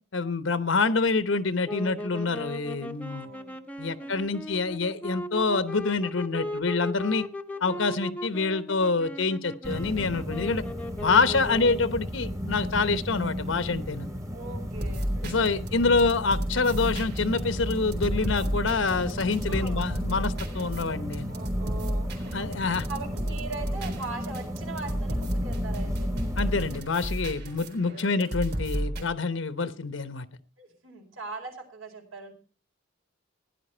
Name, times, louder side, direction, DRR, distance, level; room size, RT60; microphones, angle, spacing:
voice 1, 0.1-3.3 3.8-7.2 7.6-10.6 11.0-14.1 15.2-21.3 22.3-22.9 26.4-30.3, left 4 dB, 70° left, 12 dB, 0.9 m, -26 dB
sound 1, 1.6-12.0, left 1 dB, 5° left, 0.7 m, -37 dB
voice 2, 3.0-4.3 7.5-8.0 11.4-11.7 14.3-15.7 19.5-19.8 21.3-26.1 27.9-28.4 30.6-32.3, right 4 dB, 85° right, 1 dB, 4.8 m, -41 dB
sound 2, 9.6-26.8, equal, 15° right, 1.3 m, -34 dB
sound 3, 14.8-29.1, equal, 50° right, 3.8 m, -32 dB
16.5 x 10.5 x 4.4 m, 0.36 s
head